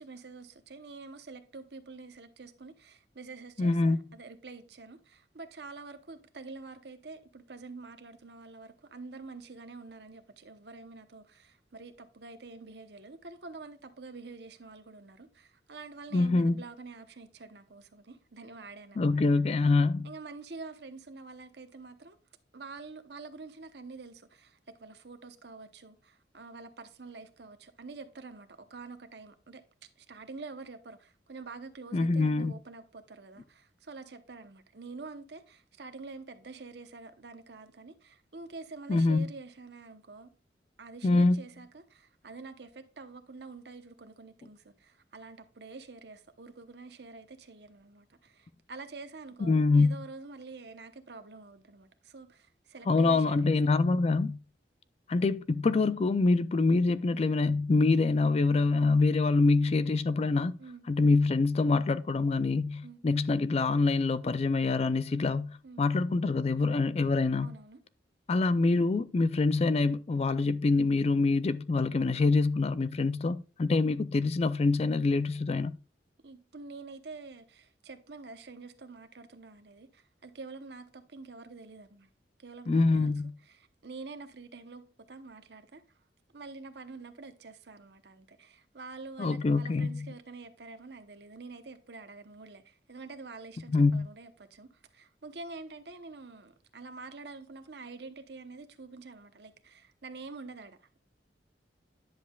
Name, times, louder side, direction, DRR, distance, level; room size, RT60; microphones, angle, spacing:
voice 1, 0.0-19.4 20.0-22.2 22.5-29.6 30.0-40.3 40.8-53.5 60.6-60.8 62.8-63.0 65.6-65.8 67.4-67.8 76.2-82.1 82.4-83.2 83.5-85.8 86.3-101.0, right 3 dB, 65° right, 0.9 m, -47 dB
voice 2, 3.6-4.0 16.1-16.6 19.0-20.1 31.9-32.5 38.9-39.3 41.0-41.4 49.4-49.9 52.9-54.4 55.1-60.6 60.9-67.5 68.3-75.7 82.7-83.3 89.2-90.1 93.7-94.1, left 3 dB, 35° left, 0.4 m, -25 dB
10.5 x 7.3 x 2.3 m
head